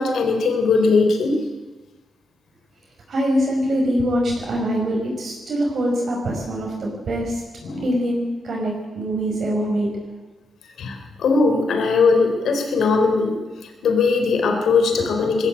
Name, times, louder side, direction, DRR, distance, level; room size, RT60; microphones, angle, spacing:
voice 1, 0.0-1.5 7.6-7.9 10.8-15.5, left 4 dB, 80° left, 5 dB, 4.2 m, -19 dB
voice 2, 3.1-7.4 7.8-9.9 14.9-15.0, equal, 55° right, -1 dB, 5.8 m, -23 dB
21.0 x 15.0 x 8.8 m, 1.2 s
cardioid pair, 110°, 0 cm